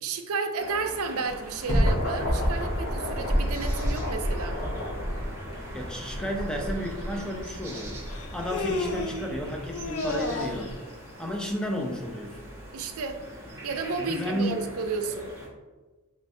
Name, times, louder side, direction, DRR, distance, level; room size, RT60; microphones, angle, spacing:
voice 1, 0.0-4.6 12.7-13.2 13.6-15.3, right 4 dB, 75° right, 6 dB, 0.5 m, -32 dB
sound 1, 0.6-15.5, right 1 dB, 10° right, 0.9 m, -43 dB
sound 2, 1.3-10.7, equal, 45° left, 1.0 m, -30 dB
voice 2, 5.7-8.0 8.3-10.8 11.2-12.4 14.0-14.6, equal, 5° left, 1 dB, 0.4 m, -32 dB
Human voice, 6.7-6.8 8.1-9.3 9.7-10.7, left 3 dB, 70° left, 0.4 m, -32 dB
4.4 x 3.1 x 2.6 m, 1.3 s
head